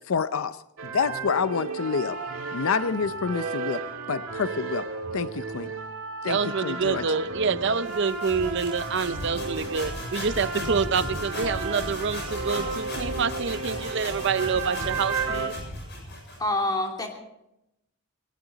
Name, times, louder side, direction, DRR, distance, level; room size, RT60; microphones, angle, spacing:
voice 1, 0.1-0.6 0.9-2.2 2.5-3.8 4.1-4.8 5.1-5.7 6.2-7.1, left 5 dB, 70° left, 14 dB, 0.5 m, -27 dB
sound 1, 0.8-15.5, right 4 dB, 80° right, 1.8 m, -34 dB
voice 2, 6.2-15.5, right 5 dB, 55° right, 13 dB, 0.6 m, -27 dB
sound 2, 7.9-16.5, left 1 dB, 50° left, 7.6 m, -36 dB
voice 3, 16.4-17.1, left 1 dB, 20° left, 1 dB, 2.9 m, -26 dB
19.0 x 18.5 x 3.9 m, 0.86 s
head